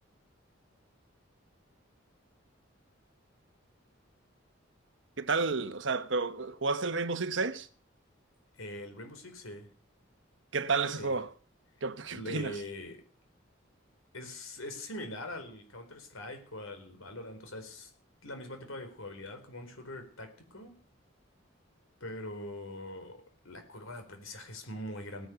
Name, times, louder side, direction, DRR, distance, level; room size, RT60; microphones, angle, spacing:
voice 1, 5.2-7.7 10.5-11.3 11.8-12.5, right 4 dB, 65° right, 1.1 m, -31 dB
voice 2, 8.6-9.7 11.0-11.2 12.1-13.0 14.1-17.9 18.2-20.8 22.0-25.3, left 1 dB, 90° left, 4.5 m, -43 dB
18.0 x 10.0 x 6.9 m
head